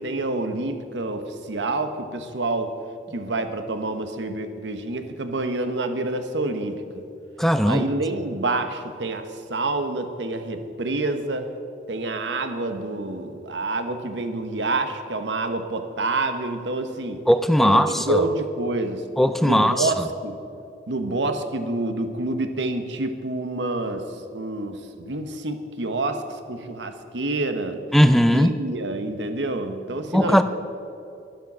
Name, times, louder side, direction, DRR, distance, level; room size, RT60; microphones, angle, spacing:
voice 1, 0.0-2.8 3.1-7.0 7.7-11.5 11.9-17.2 17.6-19.0 19.4-20.0 20.2-20.4 20.9-27.8 28.3-30.4, right 2 dB, 85° right, 8 dB, 1.0 m, -28 dB
voice 2, 7.4-7.8 17.3-18.3 19.2-19.9 27.9-28.5 30.1-30.4, equal, ahead, 10 dB, 0.3 m, -18 dB
11.5 x 11.5 x 6.1 m, 2.8 s
head